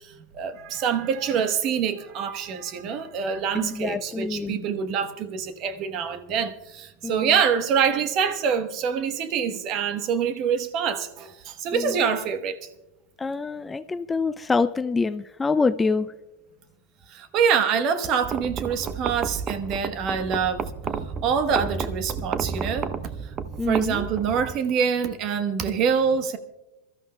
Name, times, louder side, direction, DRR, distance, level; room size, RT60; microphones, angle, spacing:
voice 1, 0.3-12.6 17.1-20.6 21.2-22.9 23.7-26.4, right 7 dB, 45° right, 1.1 m, -25 dB
voice 2, 3.5-4.6 7.0-7.3 11.7-12.0 13.2-16.1 23.6-24.1, left 4 dB, 15° left, 0.3 m, -26 dB
sound 1, 18.2-24.6, right 6 dB, 30° right, 0.6 m, -32 dB
27.0 x 13.0 x 2.2 m
hypercardioid pair, 110°, 0 cm